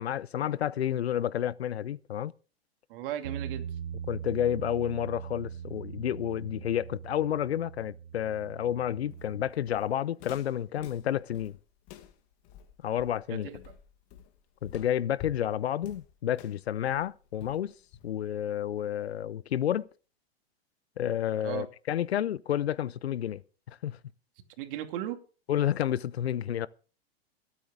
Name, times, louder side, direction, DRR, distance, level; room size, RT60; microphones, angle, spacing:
voice 1, 0.0-2.3 4.1-11.6 12.8-13.5 14.6-17.7 18.0-19.8 21.0-23.4 23.8-24.0 25.5-26.7, left 10 dB, 85° left, 0.7 m, -30 dB
voice 2, 2.9-3.7 13.3-13.7 21.4-21.7 24.6-25.2, right 12 dB, 60° right, 2.5 m, -36 dB
Bass guitar, 3.2-9.5, right 8 dB, 80° right, 1.8 m, -41 dB
Walk footsteps, 9.1-18.4, left 10 dB, 45° left, 2.1 m, -49 dB
22.5 x 8.6 x 3.7 m
hypercardioid pair, 115°, 31 cm